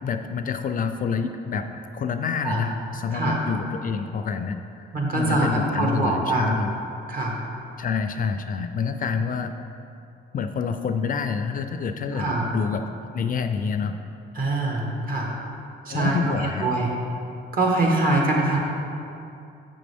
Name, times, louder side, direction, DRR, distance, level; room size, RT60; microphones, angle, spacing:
voice 1, 0.0-4.6 5.1-6.8 7.8-9.5 10.3-12.9 13.1-14.0 15.9-16.7, left 5 dB, 45° left, 8 dB, 0.4 m, -27 dB
voice 2, 4.9-6.5 7.1-7.4 12.1-12.5 14.3-15.3 15.8-16.9 17.5-18.6, right 2 dB, 45° right, -1 dB, 1.4 m, -23 dB
7.2 x 6.1 x 3.4 m, 2.6 s
cardioid pair, 90°, 20 cm